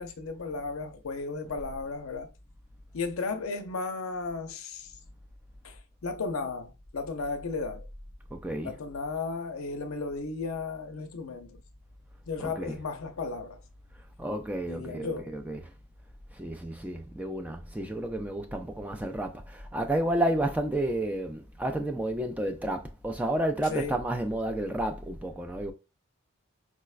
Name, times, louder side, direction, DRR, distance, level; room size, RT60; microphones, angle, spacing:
voice 1, 0.0-2.3 2.9-5.0 5.6-7.9 8.6-11.6 12.3-13.6 14.7-15.4 23.7-24.0, left 4 dB, 75° left, 0.5 m, -35 dB
voice 2, 8.3-8.8 12.4-12.8 14.2-15.7 16.4-25.7, right 1 dB, 5° right, 0.3 m, -31 dB
4.8 x 2.1 x 2.4 m
head